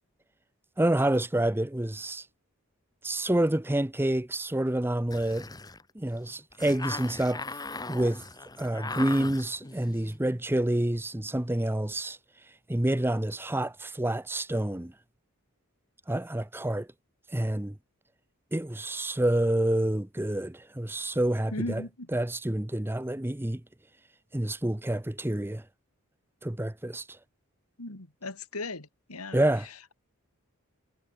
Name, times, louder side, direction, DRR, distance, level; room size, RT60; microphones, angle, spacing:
voice 1, 0.8-2.2 3.0-5.5 6.0-7.4 7.9-8.2 8.6-12.2 12.7-14.9 16.1-16.9 17.3-17.7 18.5-21.8 22.1-23.6 24.3-25.6 26.4-27.0 29.3-29.7, right 1 dB, 10° right, 0.7 m, -28 dB
sound 1, 5.1-10.3, left 3 dB, 15° left, 1.4 m, -39 dB
voice 2, 21.5-22.1 27.8-29.4, left 2 dB, 85° left, 3.3 m, -37 dB
head